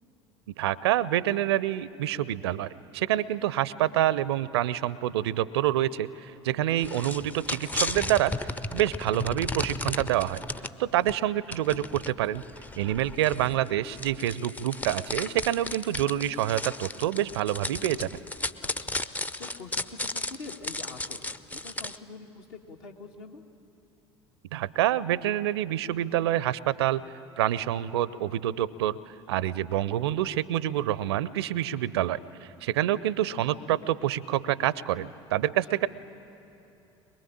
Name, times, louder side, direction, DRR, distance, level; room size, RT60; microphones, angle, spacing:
voice 1, 0.6-10.4 10.8-12.4 12.8-18.2 24.5-27.0 27.4-29.0 29.3-35.9, right 12 dB, 65° right, 20 dB, 0.5 m, -27 dB
sound 1, 6.8-10.7 11.1-11.2 11.5-22.0, left 2 dB, 10° left, 0.6 m, -35 dB
voice 2, 18.6-19.0 19.4-23.4, left 3 dB, 60° left, 2 dB, 1.7 m, -45 dB
22.5 x 21.5 x 8.8 m, 2.8 s
figure-of-eight pair, 65°, 14 cm